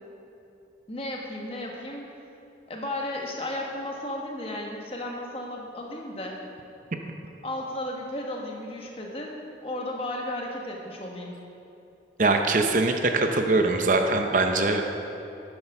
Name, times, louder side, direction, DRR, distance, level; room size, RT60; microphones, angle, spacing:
voice 1, 0.9-2.1 2.7-6.4 7.4-9.4 9.6-11.4, left 1 dB, 30° left, 0 dB, 1.3 m, -34 dB
voice 2, 12.2-14.8, right 3 dB, 45° right, 5 dB, 0.6 m, -22 dB
9.7 x 7.9 x 5.9 m, 2.8 s
head